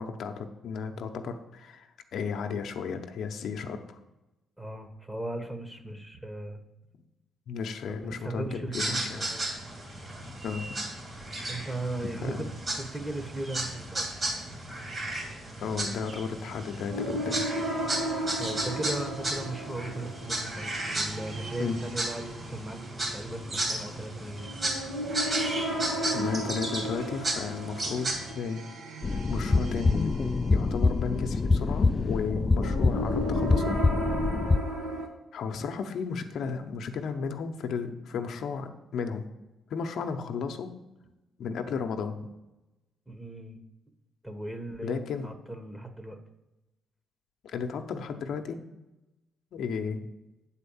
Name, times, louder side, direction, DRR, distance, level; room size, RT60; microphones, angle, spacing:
voice 1, 0.0-4.0 7.5-9.3 10.4-10.8 12.0-12.5 15.6-17.4 21.6-21.8 26.1-28.6 29.1-30.2 30.5-33.8 35.3-39.3 39.7-40.7 41.4-42.3 44.8-45.3 47.4-48.6 49.5-50.0, left 5 dB, 70° left, 5 dB, 0.7 m, -34 dB
voice 2, 4.6-6.6 7.9-9.5 11.4-12.5 12.7-14.1 18.4-22.8 23.1-24.5 43.1-43.6 44.2-46.2, right 2 dB, 10° right, 7 dB, 1.1 m, -37 dB
sound 1, 8.7-28.3, right 1 dB, 35° right, 2.4 m, -34 dB
sound 2, 16.9-35.1, right 1 dB, 75° right, 1.6 m, -36 dB
sound 3, 29.0-34.6, left 3 dB, 30° left, 0.3 m, -25 dB
8.1 x 4.3 x 7.0 m, 0.99 s
cardioid pair, 90°, 0 cm